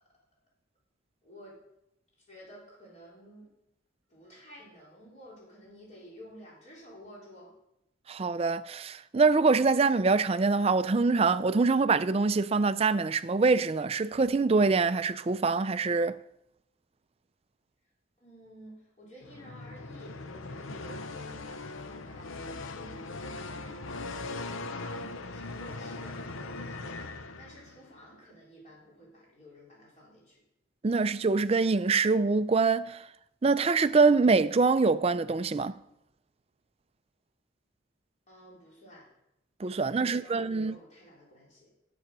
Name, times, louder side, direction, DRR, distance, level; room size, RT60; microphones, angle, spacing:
voice 1, 1.2-1.6 2.3-3.5 4.1-7.5 18.2-23.1 23.5-30.4 38.3-39.1 39.7-41.7, equal, 35° left, 4.7 m, -52 dB
voice 2, 8.1-16.2 30.8-33.0 33.4-35.7 39.6-40.8, right 4 dB, 30° right, 0.4 m, -24 dB
sound 1, 19.2-27.9, left 3 dB, 80° left, 0.8 m, -40 dB
11.5 x 7.9 x 6.0 m
head